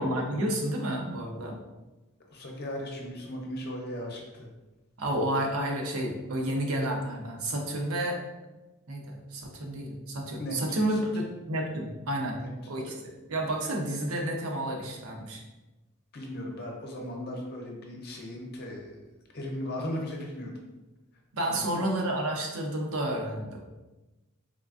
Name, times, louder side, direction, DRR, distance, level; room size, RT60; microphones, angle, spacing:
voice 1, 0.0-1.6 5.0-8.2 8.9-12.4 12.7-12.9 13.3-15.4 21.3-23.6, right 1 dB, 85° right, 1 dB, 0.7 m, -30 dB
voice 2, 2.3-4.5 10.4-11.0 12.4-13.0 16.1-19.0 19.3-20.6 21.5-21.8, left 1 dB, 50° left, 0 dB, 0.7 m, -37 dB
3.6 x 3.3 x 2.4 m, 1.1 s
head